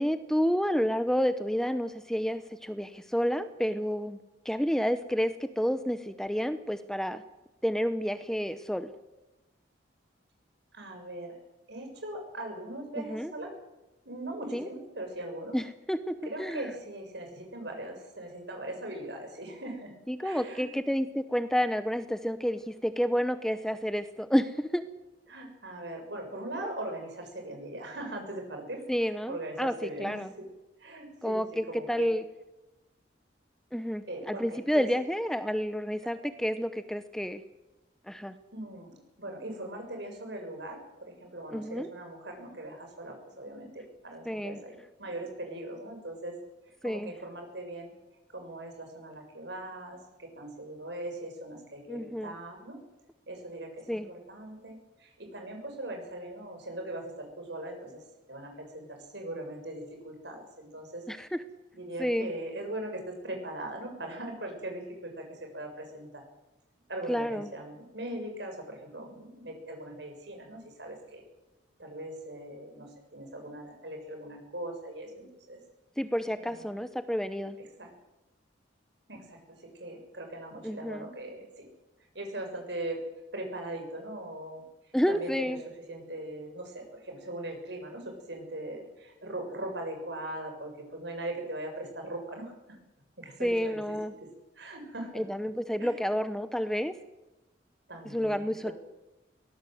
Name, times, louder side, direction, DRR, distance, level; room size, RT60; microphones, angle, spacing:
voice 1, 0.0-4.2 4.4-7.2 7.6-8.9 13.0-13.3 14.5-14.7 15.5-16.6 20.1-24.8 28.9-30.3 31.2-32.2 33.7-37.4 38.1-38.3 41.5-41.9 44.3-44.6 46.8-47.1 51.9-52.3 53.9-54.1 61.1-61.4 62.0-62.3 67.1-67.5 76.0-77.6 80.6-81.1 84.9-85.6 93.4-94.1 95.1-96.9 98.1-98.7, equal, 5° left, 11 dB, 0.8 m, -30 dB
voice 2, 10.7-11.4 11.7-13.5 14.0-15.6 16.3-19.9 20.2-20.6 25.3-30.5 30.8-31.4 31.7-32.1 34.1-34.9 38.5-46.4 46.8-47.9 48.3-52.8 53.3-58.0 58.3-61.0 61.7-66.2 66.9-71.2 71.8-75.6 76.3-76.7 77.8-77.9 79.1-79.4 79.8-81.7 82.1-83.0 83.3-84.6 85.1-85.6 85.9-92.8 93.2-93.8 94.6-95.2 95.8-96.0 97.9-98.7, right 1 dB, 65° right, 3 dB, 6.9 m, -40 dB
23.0 x 18.0 x 7.8 m, 1.0 s
head